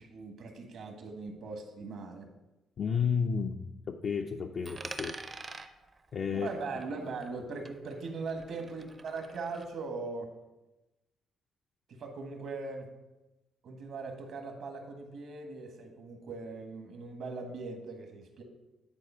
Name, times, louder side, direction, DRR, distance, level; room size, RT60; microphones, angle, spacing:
voice 1, 0.0-2.3 6.3-10.3 11.9-12.9 13.6-18.4, right 3 dB, 70° right, 4 dB, 1.5 m, -40 dB
voice 2, 2.8-5.2 6.1-6.5, left 6 dB, 55° left, 2 dB, 0.4 m, -32 dB
Coin (dropping), 4.6-7.4 7.7-9.7, right 3 dB, 30° right, 0.6 m, -46 dB
9.8 x 4.2 x 5.6 m, 1.0 s
cardioid pair, 90°, 0 cm